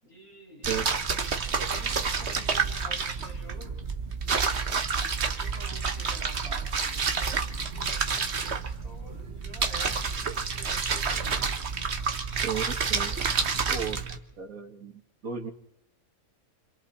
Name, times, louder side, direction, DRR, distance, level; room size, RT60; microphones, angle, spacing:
voice 1, 0.0-0.8 1.4-3.8 5.2-11.6, equal, 75° left, -3 dB, 7.4 m, -48 dB
sound 1, 0.6-14.2, right 5 dB, 50° right, 1.5 m, -29 dB
voice 2, 13.7-14.0 14.4-14.9 15.2-15.5, right 7 dB, 65° right, 5 dB, 2.3 m, -33 dB
29.5 x 26.5 x 4.3 m, 0.78 s
omnidirectional pair, 1.6 m